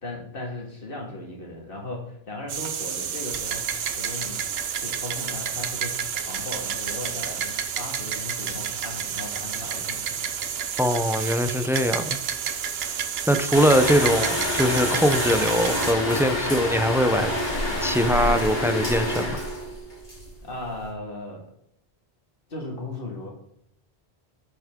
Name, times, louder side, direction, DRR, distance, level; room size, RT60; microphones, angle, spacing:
voice 1, 0.0-4.4 4.8-10.3 20.4-21.5 22.5-23.3, left 2 dB, 60° left, 0 dB, 2.1 m, -37 dB
sound 1, 2.5-15.9, right 8 dB, 75° right, 0.9 m, -30 dB
voice 2, 10.8-12.2 12.9-13.0 13.3-17.4 17.8-19.4, equal, 5° right, 8 dB, 0.3 m, -22 dB
sound 2, 13.5-20.9, left 1 dB, 35° left, 2.9 m, -27 dB
8.3 x 7.1 x 3.6 m, 0.73 s
omnidirectional pair, 1.0 m